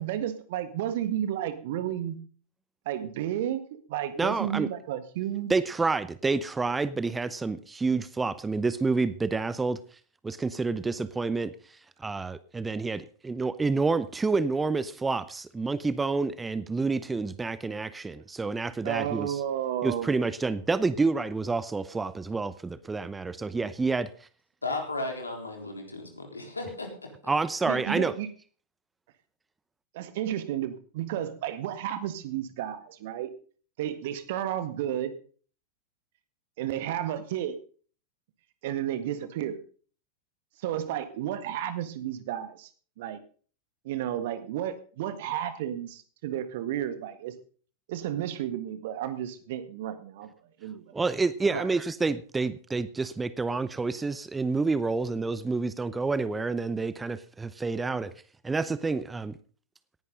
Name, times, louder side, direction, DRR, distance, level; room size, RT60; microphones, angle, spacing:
voice 1, 0.0-2.2 2.9-5.5 18.8-20.1 27.6-28.3 29.9-33.3 33.8-35.1 36.6-37.6 38.6-39.6 40.6-42.7 43.0-43.2 43.8-47.3 47.9-50.3 50.6-50.9 51.5-51.7, right 11 dB, 50° right, 11 dB, 1.7 m, -32 dB
voice 2, 4.2-4.7 5.5-9.8 10.2-11.5 12.0-19.4 19.8-24.1 27.3-28.1 50.9-58.1 58.4-59.3, right 3 dB, 10° right, 16 dB, 0.7 m, -28 dB
voice 3, 24.6-26.9, left 2 dB, 80° left, 3 dB, 3.8 m, -34 dB
18.0 x 11.0 x 3.9 m, 0.42 s
figure-of-eight pair, 90°, 0 cm